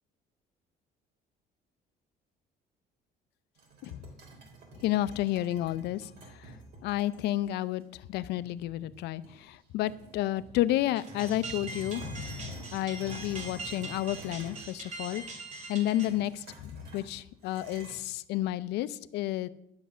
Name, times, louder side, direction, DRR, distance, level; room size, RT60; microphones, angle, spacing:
sound 1, 3.6-7.2 7.8-7.9 8.4-9.5 9.8-18.0, right 2 dB, 70° right, 3.7 m, -48 dB
voice 1, 4.8-6.5 6.8-15.2 15.7-19.5, left 14 dB, 85° left, 15 dB, 0.6 m, -31 dB
sound 2, 11.0-16.1, right 3 dB, 50° right, 3.4 m, -43 dB
11.5 x 8.0 x 6.2 m, 0.77 s
cardioid pair, 110°, 17 cm